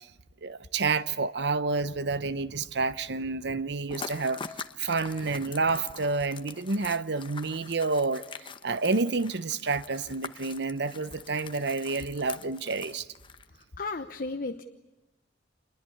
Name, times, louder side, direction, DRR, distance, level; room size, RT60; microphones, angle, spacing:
voice 1, 0.4-4.4 4.8-8.2 8.6-13.1, right 3 dB, 65° right, 0.8 m, -29 dB
sound 1, 3.9-13.6, left 5 dB, 30° left, 0.9 m, -44 dB
voice 2, 13.8-14.6, left 3 dB, 50° left, 1.0 m, -34 dB
27.0 x 21.5 x 8.5 m
head